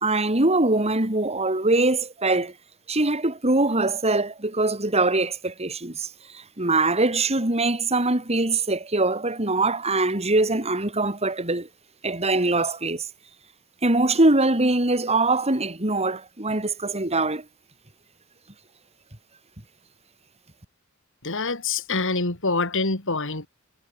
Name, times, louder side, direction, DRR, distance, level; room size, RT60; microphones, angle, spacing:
voice 1, 0.0-2.5 2.9-6.1 6.3-11.7 12.0-13.0 13.8-17.4, right 2 dB, 30° right, 3.5 m, -22 dB
voice 2, 21.2-23.5, left 3 dB, 60° left, 3.5 m, -25 dB
head